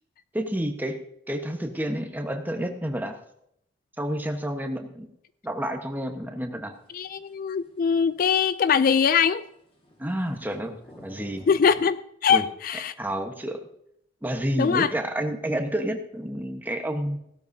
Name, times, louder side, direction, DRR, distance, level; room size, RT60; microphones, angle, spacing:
voice 1, 0.3-1.0 1.3-3.2 4.0-5.1 5.4-6.7 10.0-10.8 11.0-11.5 12.3-12.4 13.0-13.6 14.2-17.2, right 1 dB, 10° right, 5 dB, 1.1 m, -29 dB
sound 1, 6.7-11.9, left 1 dB, 30° left, 1.7 m, -52 dB
voice 2, 6.9-9.4 11.5-12.9 14.5-14.9, left 6 dB, 45° left, 14 dB, 0.3 m, -22 dB
17.0 x 12.5 x 2.7 m, 0.75 s
head